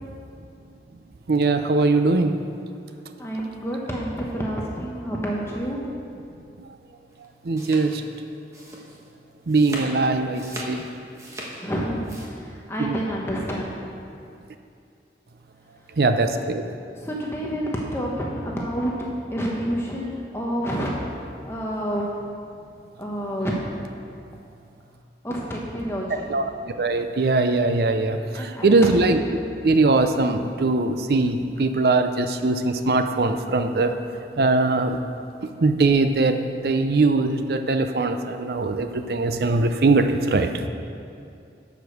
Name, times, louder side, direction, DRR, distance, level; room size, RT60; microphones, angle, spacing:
voice 1, 1.3-2.3 7.4-8.0 9.5-10.8 12.8-13.0 16.0-16.6 26.3-26.5 26.8-29.2 29.6-33.9 34.4-35.0 35.6-40.5, right 3 dB, 60° right, 7 dB, 0.5 m, -21 dB
voice 2, 3.2-5.8 11.6-13.8 16.9-18.9 19.3-22.3 23.0-23.5 25.2-26.3 28.3-29.1, equal, 15° left, -3 dB, 0.9 m, -29 dB
sound 1, 7.1-12.3, right 1 dB, 15° right, 1.2 m, -39 dB
10.5 x 5.2 x 6.4 m, 2.4 s
head